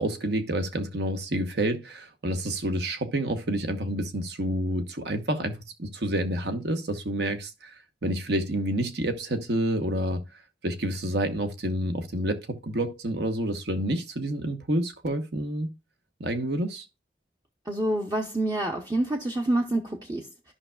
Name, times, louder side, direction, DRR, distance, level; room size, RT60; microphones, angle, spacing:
voice 1, 0.0-10.2 10.6-15.7 16.2-16.8, right 1 dB, 75° right, 1.1 m, -29 dB
voice 2, 17.6-20.5, right 1 dB, 20° right, 0.6 m, -27 dB
13.0 x 5.5 x 2.3 m
head